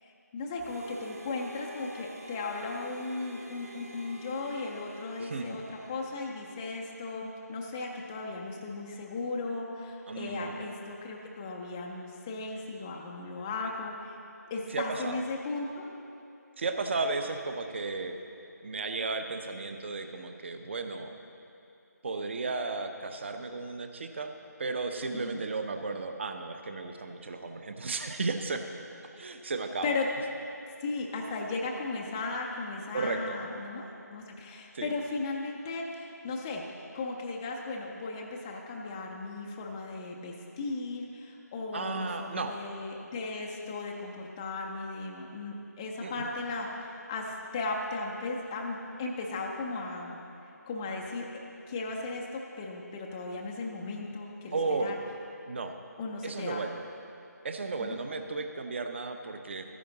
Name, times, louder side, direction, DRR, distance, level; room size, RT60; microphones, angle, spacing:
voice 1, 0.0-14.2 14.5-15.8 25.1-25.4 29.8-30.1 30.8-36.7 36.9-50.2 50.7-51.3 51.7-55.0 56.0-56.6 57.8-57.9, left 3 dB, 10° left, -1 dB, 0.4 m, -36 dB
Harmonica, 0.6-7.0, equal, 60° right, 1.1 m, -48 dB
voice 2, 5.2-5.6 10.1-10.6 14.7-15.2 16.6-18.2 18.6-21.1 22.0-24.3 24.6-28.7 29.2-29.9 32.9-33.4 34.7-34.9 41.7-42.6 46.0-46.3 54.5-55.0 55.5-55.8 56.2-56.8 57.4-59.6, right 3 dB, 40° right, 6 dB, 0.7 m, -34 dB
13.5 x 10.0 x 3.9 m, 2.7 s
figure-of-eight pair, 160°, 9 cm